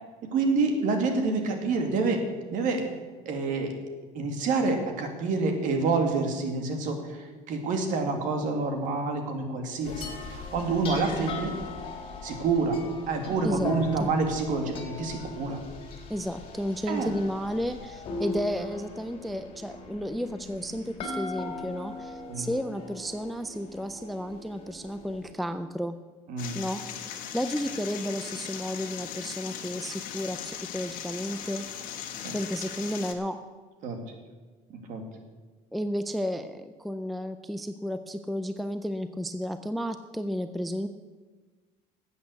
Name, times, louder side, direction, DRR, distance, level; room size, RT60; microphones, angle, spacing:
voice 1, 0.3-2.2 2.5-2.9 3.3-3.7 4.1-11.5 12.2-12.8 13.1-15.6 16.9-17.1 22.3-22.5 26.3-26.6 32.2-32.3 33.8-34.0 34.7-35.0, right 3 dB, 55° right, 5 dB, 2.2 m, -27 dB
sound 1, 9.8-25.3, left 3 dB, 35° left, 2.6 m, -39 dB
voice 2, 16.1-26.0 26.6-31.7 32.3-33.4 35.7-40.9, equal, ahead, 10 dB, 0.4 m, -32 dB
sound 2, 26.4-33.1, left 9 dB, 60° left, 1.6 m, -38 dB
13.0 x 8.2 x 8.2 m, 1.4 s
cardioid pair, 160°, 16 cm